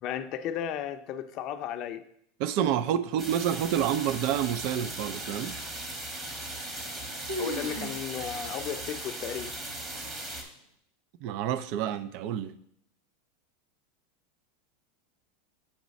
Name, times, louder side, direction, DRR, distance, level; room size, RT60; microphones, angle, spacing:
voice 1, 0.0-2.0 7.4-9.5, left 9 dB, 45° left, 0.5 m, -34 dB
voice 2, 2.4-5.5 11.2-12.5, right 10 dB, 55° right, 0.4 m, -28 dB
sound 1, 3.2-10.4, right 1 dB, 20° right, 1.1 m, -38 dB
sound 2, 6.6-7.0 7.3-8.0 8.3-8.5 9.1-9.2 10.0-10.3, equal, 85° right, 0.9 m, -36 dB
7.2 x 3.1 x 5.2 m
supercardioid pair, 125°, 0 cm